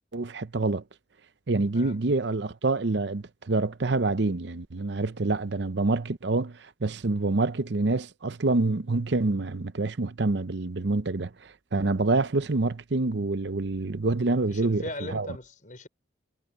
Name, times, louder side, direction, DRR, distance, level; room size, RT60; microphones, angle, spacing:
voice 1, 0.1-0.8 1.5-14.8 15.1-15.3, right 3 dB, 60° right, 0.7 m, -27 dB
voice 2, 14.4-15.9, left 2 dB, 40° left, 5.6 m, -39 dB
head